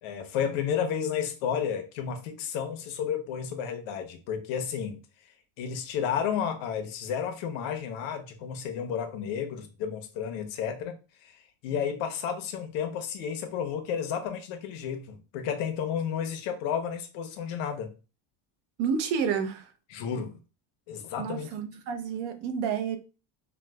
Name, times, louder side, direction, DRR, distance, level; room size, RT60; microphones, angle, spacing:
voice 1, 0.0-5.0 5.6-10.9 11.2-17.9 19.9-20.4 20.9-21.5, left 8 dB, 85° left, 0.8 m, -32 dB
voice 2, 18.8-19.7 21.2-23.0, right 6 dB, 65° right, 0.7 m, -30 dB
4.4 x 2.2 x 2.2 m
cardioid pair, 175°, 47 cm